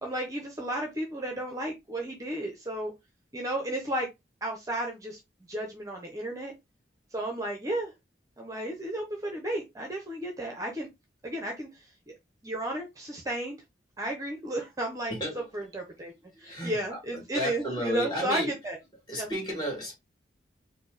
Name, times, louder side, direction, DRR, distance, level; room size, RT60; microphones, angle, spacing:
voice 1, 0.0-2.9 3.3-4.1 4.4-5.2 5.5-6.5 7.1-7.9 8.4-10.9 11.2-12.1 12.4-13.6 14.0-16.1 16.4-18.8 19.1-19.3, right 1 dB, 20° right, 0.7 m, -33 dB
voice 2, 15.1-15.5 16.4-18.5 19.1-20.0, equal, 25° left, 2.3 m, -33 dB
4.4 x 2.1 x 3.9 m
head